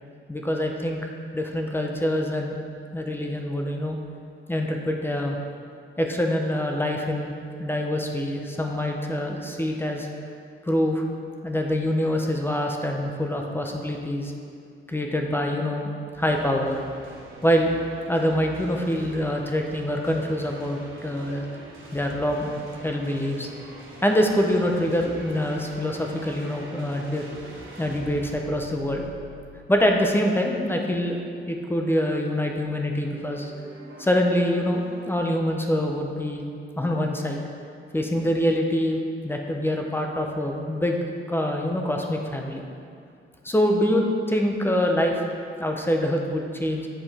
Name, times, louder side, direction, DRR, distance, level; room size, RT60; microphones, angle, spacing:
voice 1, 0.3-1.0 1.3-2.6 2.9-4.0 4.5-5.4 6.0-7.3 7.6-10.1 10.7-11.0 11.4-14.3 14.9-15.9 16.2-16.8 17.4-17.7 18.1-21.5 21.9-22.5 22.8-23.5 24.0-27.2 27.8-29.1 29.7-31.2 31.5-33.5 34.0-36.5 36.8-37.4 37.9-41.0 41.3-42.6 43.4-45.2 45.6-46.9, equal, 10° left, 1 dB, 0.7 m, -25 dB
sound 1, 16.1-31.1 32.9-35.2, right 1 dB, 70° right, 1.5 m, -44 dB
7.9 x 5.0 x 4.2 m, 2.3 s
wide cardioid pair, 120°, 21 cm